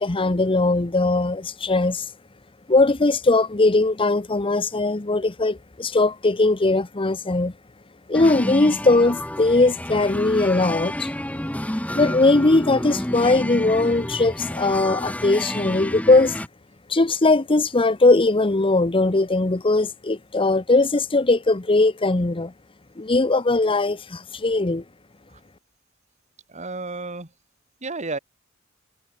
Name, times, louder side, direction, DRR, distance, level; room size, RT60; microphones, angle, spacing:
voice 1, 0.0-2.1 2.7-7.5 8.1-11.1 11.9-16.3 16.9-22.5 23.0-24.8, left 2 dB, 25° left, 0.8 m, -20 dB
sound 1, 8.1-16.5, left 1 dB, 5° left, 1.6 m, -30 dB
voice 2, 26.5-27.3 27.8-28.2, right 3 dB, 35° right, 2.8 m, -31 dB
head